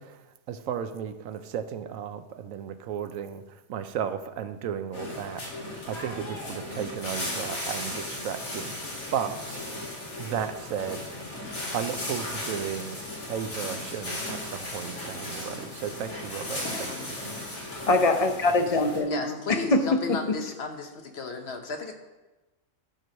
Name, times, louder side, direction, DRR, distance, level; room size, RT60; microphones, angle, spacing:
voice 1, 0.0-5.6 5.9-8.7 9.1-11.0 11.7-13.0 13.3-17.2, right 8 dB, 80° right, 10 dB, 1.0 m, -34 dB
sound 1, 4.9-19.0, left 1 dB, 90° left, 2.8 m, -36 dB
voice 2, 16.7-17.1 19.1-21.9, left 3 dB, 55° left, 5 dB, 1.1 m, -34 dB
voice 3, 17.9-20.4, left 2 dB, 40° left, 7 dB, 0.6 m, -24 dB
11.5 x 4.6 x 6.3 m, 1.1 s
omnidirectional pair, 1.4 m